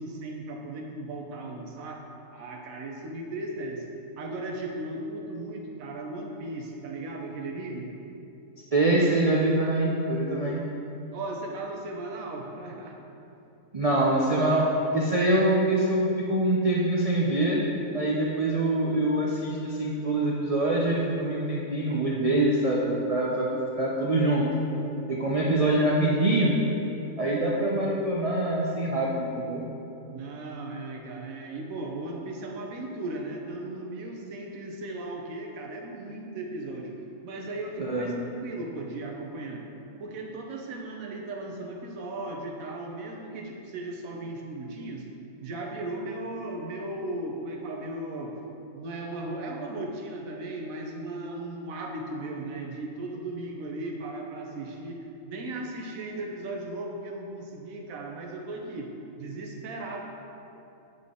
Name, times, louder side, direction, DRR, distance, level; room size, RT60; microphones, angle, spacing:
voice 1, 0.0-3.8 4.2-7.9 10.4-10.6 11.1-13.1 30.1-37.0 37.2-39.7 40.0-45.1 45.4-48.4 48.7-60.0, right 2 dB, 80° right, 1 dB, 1.2 m, -36 dB
voice 2, 8.7-10.6 13.7-14.7 14.9-17.7 17.9-23.5 23.7-24.5 25.1-26.5 27.2-29.6 37.8-38.1, right 1 dB, 55° right, -4 dB, 0.4 m, -24 dB
9.2 x 3.8 x 3.7 m, 2.8 s
omnidirectional pair, 1.4 m